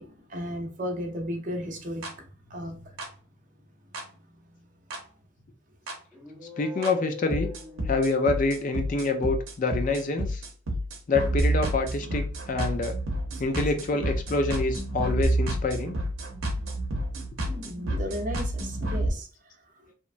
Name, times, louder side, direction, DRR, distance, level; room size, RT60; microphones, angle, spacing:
voice 1, 0.0-3.0 3.9-4.2 5.0-5.1 13.3-13.4 17.4-19.9, equal, 40° right, 3 dB, 0.6 m, -36 dB
sound 1, 2.0-2.1 3.0-3.1 3.9-4.0 4.9-5.0 5.9-6.0 6.8-6.9 7.3-19.1, right 1 dB, 80° right, 0.7 m, -29 dB
sound 2, 6.1-8.7, left 7 dB, 5° left, 0.7 m, -42 dB
voice 2, 6.6-7.5 7.9-10.4 11.1-12.9 13.4-16.0, left 3 dB, 40° left, 6 dB, 0.3 m, -26 dB
2.9 x 2.2 x 2.4 m, 0.37 s
head